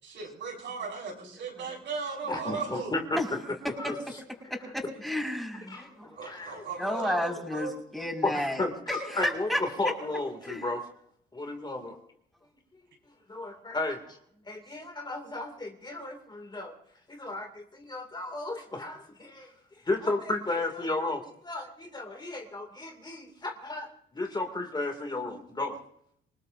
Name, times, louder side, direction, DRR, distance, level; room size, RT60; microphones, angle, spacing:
voice 1, 0.0-3.0 6.2-7.8, right 4 dB, 70° right, -1 dB, 5.7 m, -37 dB
voice 2, 2.3-3.4 3.7-4.0 5.7-5.9 6.2-6.6 8.2-10.8 11.3-12.0 13.3-14.2 14.5-16.8 17.1-19.5 19.8-25.8, left 2 dB, 20° left, 4 dB, 2.5 m, -33 dB
voice 3, 4.5-6.2 6.6-8.6 8.9-9.6 10.4-10.7, left 1 dB, ahead, 0 dB, 5.6 m, -32 dB
26.5 x 19.5 x 2.7 m, 0.69 s
cardioid pair, 90°, 20 cm